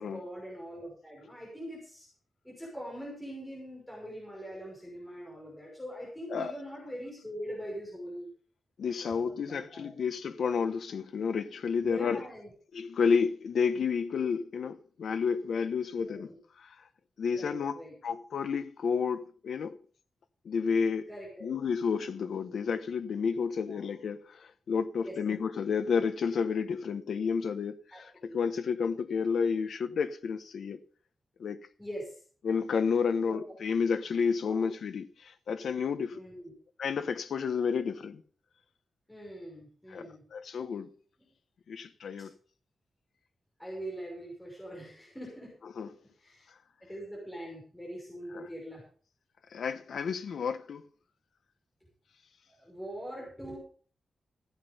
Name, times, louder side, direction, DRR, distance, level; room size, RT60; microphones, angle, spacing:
voice 1, 0.0-2.1 2.4-8.3 9.0-9.9 11.8-12.5 15.9-16.4 17.3-17.9 21.1-21.5 23.7-23.9 25.0-25.2 27.9-28.3 31.8-32.2 33.2-33.4 34.4-34.7 36.1-36.5 39.1-40.2 42.2-42.3 43.6-45.5 46.2-46.5 46.8-48.8 52.6-53.6, equal, 5° left, 5.8 m, -43 dB
voice 2, 8.8-12.2 12.7-16.3 16.6-16.8 17.2-17.8 18.0-19.8 20.4-21.1 21.4-30.8 31.4-31.6 32.4-36.2 36.8-38.2 39.9-40.9 41.7-42.3 45.8-45.9 48.3-48.5 49.5-50.8, left 6 dB, 70° left, 1.0 m, -31 dB
15.0 x 9.1 x 5.4 m
wide cardioid pair, 175°, 0 cm